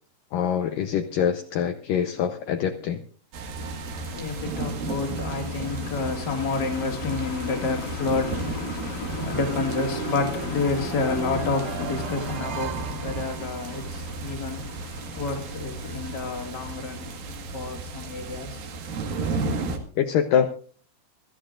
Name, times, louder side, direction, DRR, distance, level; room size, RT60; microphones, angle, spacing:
voice 1, 0.3-3.0 20.0-20.5, left 8 dB, 75° left, 2.2 m, -24 dB
sound 1, 3.3-19.8, right 3 dB, 65° right, 3.3 m, -34 dB
voice 2, 3.6-18.7, left 4 dB, 35° left, 2.1 m, -29 dB
sound 2, 9.3-14.0, right 9 dB, 90° right, 1.5 m, -37 dB
25.0 x 13.5 x 2.5 m
omnidirectional pair, 4.6 m